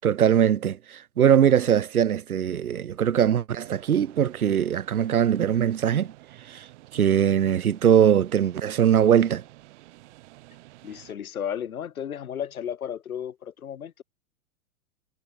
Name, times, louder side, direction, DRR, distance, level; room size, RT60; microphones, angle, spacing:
voice 1, 0.0-6.1 6.5-6.7 6.9-9.4, right 9 dB, 85° right, 0.9 m, -21 dB
sound 1, 3.6-11.2, right 18 dB, 55° right, 3.8 m, -51 dB
voice 2, 10.8-14.0, left 9 dB, 75° left, 2.2 m, -34 dB
hypercardioid pair, 110°, 43 cm